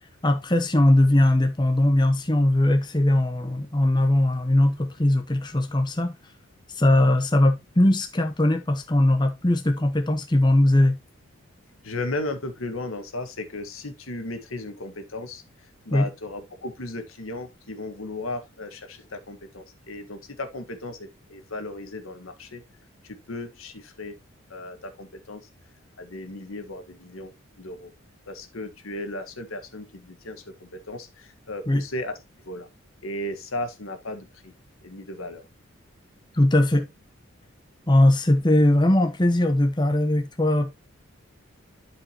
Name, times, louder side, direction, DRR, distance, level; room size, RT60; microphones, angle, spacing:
voice 1, 0.2-6.1 6.7-11.0 15.9-16.1 31.7-31.8 36.3-36.9 37.9-40.7, left 1 dB, 20° left, 0.7 m, -20 dB
voice 2, 11.8-15.4 15.8-22.6 23.0-24.1 24.5-25.4 26.0-27.3 27.6-27.9 28.3-32.2 32.4-32.7 33.0-34.5 34.8-35.4, left 2 dB, 85° left, 1.5 m, -35 dB
12.0 x 5.0 x 2.9 m
head